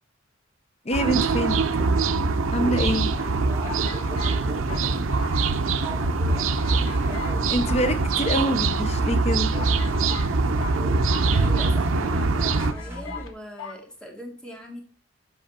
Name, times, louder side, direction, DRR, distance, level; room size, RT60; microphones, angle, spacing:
voice 1, 0.9-1.6 2.5-3.1 7.5-9.5, equal, 35° left, 0.7 m, -25 dB
sound 1, 0.9-12.7, right 3 dB, 90° right, 0.8 m, -23 dB
sound 2, 2.2-2.9 3.6-5.9 6.2-6.3 6.6-7.4 7.7-8.6 9.2-9.3 9.5-11.8 12.1-12.2 12.5-13.3 13.6-13.8, left 5 dB, 85° left, 1.6 m, -40 dB
sound 3, 3.0-13.3, right 1 dB, 15° right, 2.1 m, -37 dB
voice 2, 4.5-6.9 11.3-14.8, equal, 5° left, 2.3 m, -41 dB
8.0 x 5.5 x 7.2 m
head